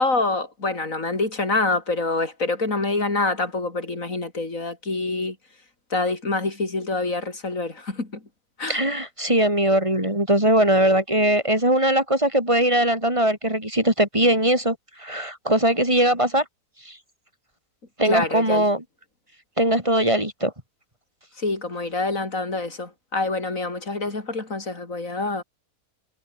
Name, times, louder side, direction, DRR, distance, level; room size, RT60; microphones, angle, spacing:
voice 1, 0.0-5.4 5.9-8.1 8.6-8.8 18.0-18.6 21.4-25.4, left 3 dB, 55° left, 4.4 m, -26 dB
voice 2, 8.7-16.4 16.9-17.0 18.0-18.8 19.6-20.5, right 1 dB, 20° right, 5.6 m, -20 dB
omnidirectional pair, 1.6 m